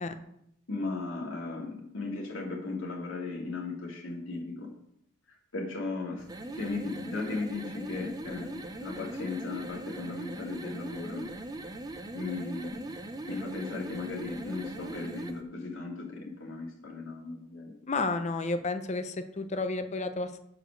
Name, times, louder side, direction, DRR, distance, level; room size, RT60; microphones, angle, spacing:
voice 1, 0.7-4.7 5.3-6.3 6.5-11.3 12.1-12.8 13.3-17.7, left 3 dB, 70° left, -1 dB, 2.1 m, -36 dB
sound 1, 6.2-15.4, right 2 dB, 20° right, 0.5 m, -40 dB
voice 2, 17.9-20.4, left 3 dB, 35° left, 9 dB, 0.6 m, -31 dB
6.7 x 4.9 x 6.3 m, 0.77 s
head